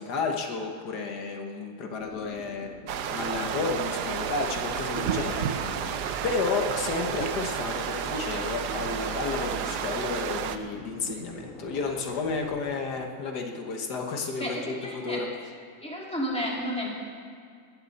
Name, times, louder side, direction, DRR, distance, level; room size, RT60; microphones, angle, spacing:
voice 1, 0.0-2.8 3.1-5.9 6.2-15.3, left 4 dB, 85° left, 3 dB, 1.8 m, -32 dB
sound 1, 2.0-13.0, left 4 dB, 55° left, 1.8 m, -46 dB
sound 2, 2.9-10.6, right 8 dB, 90° right, 1.3 m, -32 dB
sound 3, 5.0-12.5, right 6 dB, 60° right, 1.2 m, -39 dB
voice 2, 14.4-15.2 15.8-16.9, equal, 5° left, -4 dB, 2.8 m, -32 dB
19.0 x 14.5 x 4.2 m, 2.1 s
omnidirectional pair, 1.7 m